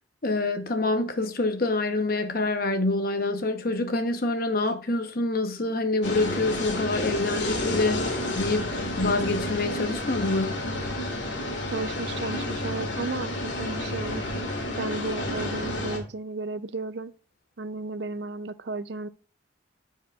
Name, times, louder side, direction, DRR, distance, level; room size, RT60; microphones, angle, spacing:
voice 1, 0.2-10.6, left 2 dB, 50° left, 0.9 m, -26 dB
sound 1, 6.0-16.0, left 1 dB, 70° left, 1.9 m, -30 dB
voice 2, 11.7-14.2 14.8-17.1 17.6-19.1, right 3 dB, 60° right, 0.5 m, -33 dB
13.5 x 4.7 x 2.4 m
head